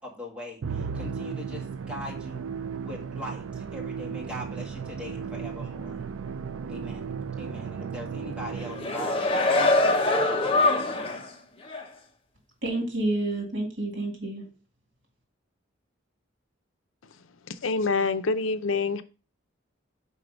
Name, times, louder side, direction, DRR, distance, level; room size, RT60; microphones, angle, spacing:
voice 1, 0.0-2.5 2.8-6.0 6.7-9.2 9.6-11.2, left 1 dB, 5° right, -3 dB, 1.9 m, -41 dB
Musical instrument, 0.6-9.1, right 6 dB, 85° right, 0.4 m, -35 dB
sound 1, 8.6-11.3 11.7-11.8, left 2 dB, 30° left, 1.0 m, -23 dB
voice 2, 12.6-14.5, right 2 dB, 65° right, 1 dB, 2.6 m, -29 dB
voice 3, 17.5-19.0, left 4 dB, 75° left, 12 dB, 0.6 m, -26 dB
5.7 x 4.7 x 5.0 m, 0.34 s
head